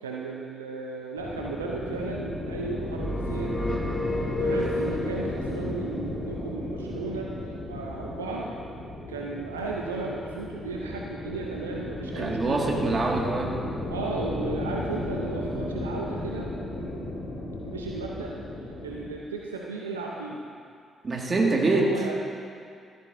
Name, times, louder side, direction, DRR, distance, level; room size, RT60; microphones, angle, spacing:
voice 1, 0.0-3.9 4.4-8.5 9.1-13.0 13.9-16.5 16.8-16.9 17.6-18.3 18.8-20.4 21.5-22.1, right 3 dB, 90° right, -2 dB, 0.6 m, -35 dB
sound 1, 1.2-19.1, left 1 dB, 65° left, 2.9 m, -34 dB
sound 2, 2.9-5.4, left 1 dB, 20° left, 1.5 m, -30 dB
voice 2, 12.2-13.6 21.0-22.1, right 2 dB, 40° right, -1 dB, 2.0 m, -25 dB
13.5 x 13.5 x 2.7 m, 2.3 s
hypercardioid pair, 40°, 0 cm